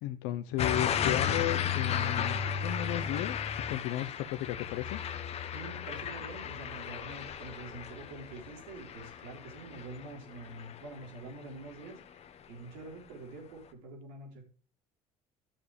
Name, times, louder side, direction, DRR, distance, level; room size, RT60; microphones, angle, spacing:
voice 1, 0.0-3.4 3.7-5.0, left 13 dB, 80° left, 9 dB, 0.8 m, -34 dB
sound 1, 0.6-11.4 11.8-12.2, left 8 dB, 50° left, 1.1 m, -34 dB
voice 2, 5.5-14.4, right 2 dB, 85° right, 1 dB, 3.9 m, -46 dB
11.0 x 7.2 x 3.4 m, 0.40 s
supercardioid pair, 90°, 14 cm